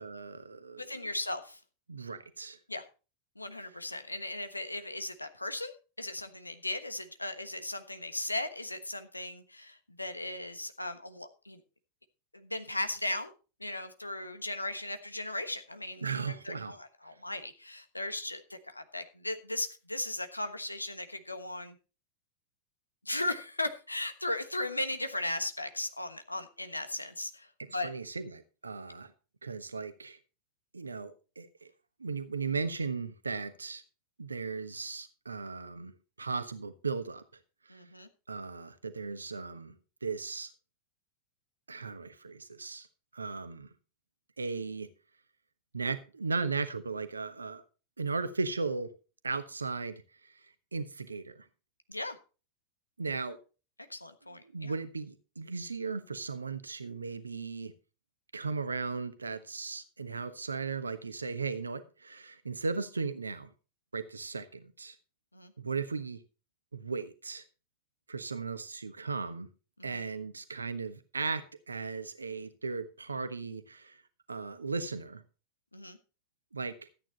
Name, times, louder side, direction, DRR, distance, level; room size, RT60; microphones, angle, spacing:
voice 1, 0.0-1.1 1.9-2.6 16.0-16.8 27.8-29.1 29.4-30.2 30.7-31.7 32.0-33.8 34.2-35.9 36.2-37.2 37.7-37.8 38.3-39.7 40.0-40.5 41.7-42.9 43.1-43.7 44.4-44.9 45.7-47.6 48.0-48.9 49.2-50.0 50.7-51.5 53.0-53.4 54.4-57.7 58.3-63.5 63.9-65.0 65.6-66.2 66.7-67.4 68.1-69.5 69.8-74.0 74.3-75.2 76.5-76.7, right 4 dB, 75° right, 11 dB, 1.2 m, -36 dB
voice 2, 0.8-1.6 2.7-2.9 3.4-11.6 12.3-13.3 13.6-21.8 23.0-27.9 37.7-38.1 51.9-52.2 53.9-54.7 65.3-65.5 69.8-70.0 75.7-76.0, left 2 dB, 85° left, 9 dB, 1.2 m, -37 dB
13.5 x 9.0 x 4.1 m, 0.34 s
figure-of-eight pair, 90°, 0 cm